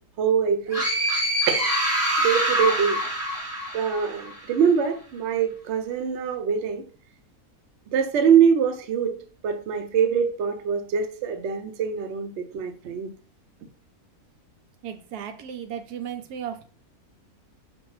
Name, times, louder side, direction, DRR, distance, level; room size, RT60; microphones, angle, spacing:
voice 1, 0.2-0.9 1.5-1.7 2.2-3.0 3.7-6.8 7.9-9.2 9.4-13.1, right 7 dB, 60° right, 6 dB, 0.8 m, -23 dB
sound 1, 0.7-4.4, right 1 dB, 10° right, 1.0 m, -25 dB
voice 2, 14.8-16.6, right 8 dB, 85° right, 6 dB, 1.2 m, -35 dB
5.2 x 2.6 x 3.1 m, 0.40 s
omnidirectional pair, 1.6 m